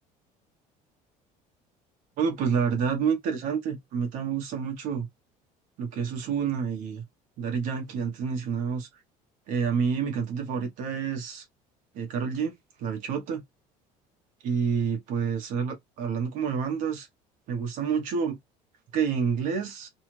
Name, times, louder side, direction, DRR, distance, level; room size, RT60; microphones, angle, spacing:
voice 1, 2.2-5.1 5.8-7.0 7.4-8.9 9.5-11.4 11.9-12.5 12.8-13.4 14.4-17.1 17.5-18.4 18.9-19.9, right 6 dB, 60° right, 0.9 m, -28 dB
2.7 x 2.4 x 3.0 m
cardioid pair, 150°, 15 cm